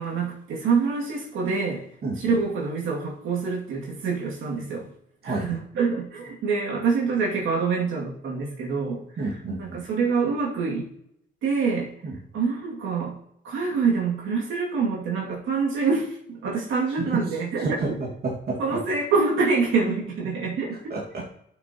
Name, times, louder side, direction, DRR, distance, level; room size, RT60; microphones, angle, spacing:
voice 1, 0.0-1.9 2.2-4.9 5.2-9.0 9.6-10.9 11.4-11.9 12.3-13.2 13.4-17.8 18.6-20.8, right 4 dB, 80° right, -3 dB, 2.4 m, -26 dB
voice 2, 9.2-9.8 12.0-12.2 17.0-18.8 20.9-21.3, right 3 dB, 50° right, -2 dB, 2.0 m, -30 dB
11.5 x 6.2 x 3.0 m, 0.74 s
cardioid pair, 90°, 20 cm